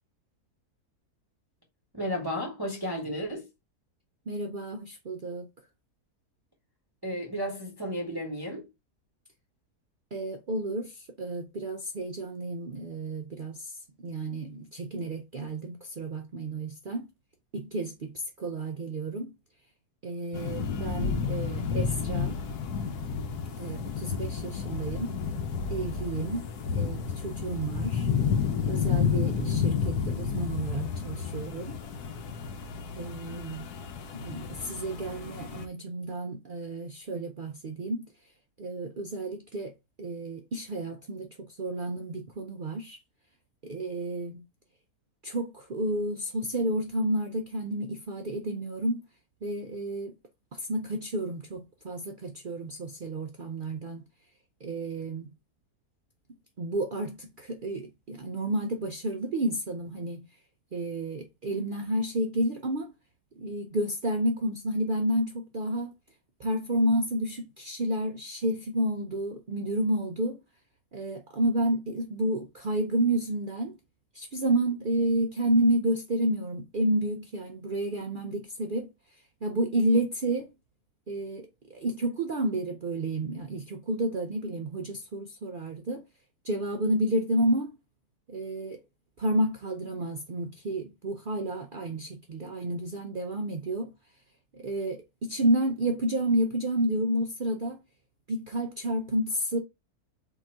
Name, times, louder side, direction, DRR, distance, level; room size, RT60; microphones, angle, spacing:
voice 1, 1.9-3.4 7.0-8.7, equal, 20° right, 0.8 m, -33 dB
voice 2, 4.3-5.5 10.1-13.8 14.0-17.1 17.5-19.3 20.0-22.4 23.6-25.2 25.7-26.5 26.7-28.1 28.7-31.8 33.0-33.6 34.2-38.1 38.6-39.7 40.0-43.0 43.6-44.4 45.2-49.0 49.4-50.1 50.5-54.0 54.6-55.3 56.6-60.3 60.7-62.9 63.4-65.9 66.4-70.4 70.9-73.8 74.1-78.9 79.4-80.5 81.1-86.0 86.4-87.7 88.3-88.8 89.2-93.9 94.5-97.8 98.3-99.6, right 1 dB, 75° right, 0.4 m, -30 dB
sound 1, 20.3-35.6, left 6 dB, 85° left, 1.2 m, -31 dB
3.8 x 2.9 x 4.3 m
omnidirectional pair, 1.7 m